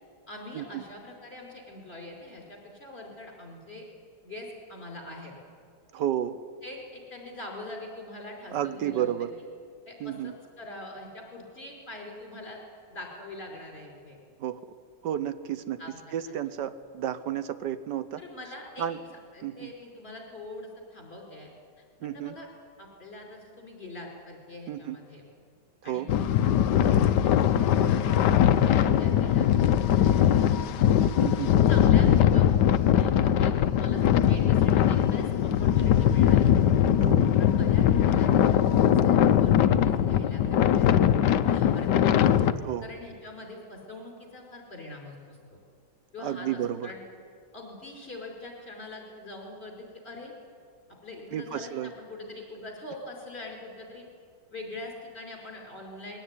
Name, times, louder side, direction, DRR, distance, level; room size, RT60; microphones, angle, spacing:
voice 1, 0.3-3.9 4.2-5.3 6.6-9.1 9.9-12.6 12.9-14.2 15.8-16.0 16.3-16.5 18.2-18.9 19.3-21.5 22.0-22.5 22.8-25.2 25.8-30.6 31.7-32.5 32.8-36.5 37.4-41.0 41.4-42.1 42.8-45.4 46.1-47.0 47.5-50.3 51.0-54.1 54.5-56.2, left 2 dB, 35° left, 0 dB, 5.3 m, -43 dB
voice 2, 5.9-6.4 8.5-9.3 10.0-10.3 14.4-14.6 15.0-15.8 16.1-18.2 18.8-19.0 19.4-19.7 22.0-22.4 24.7-25.0 25.8-26.1 28.7-28.9 31.2-31.5 37.0-37.3 42.6-42.8 46.2-46.9 51.3-51.9, right 11 dB, 80° right, 13 dB, 1.5 m, -32 dB
sound 1, 26.1-42.5, left 10 dB, 75° left, 1.4 m, -21 dB
22.0 x 17.0 x 9.9 m, 2.1 s
omnidirectional pair, 1.9 m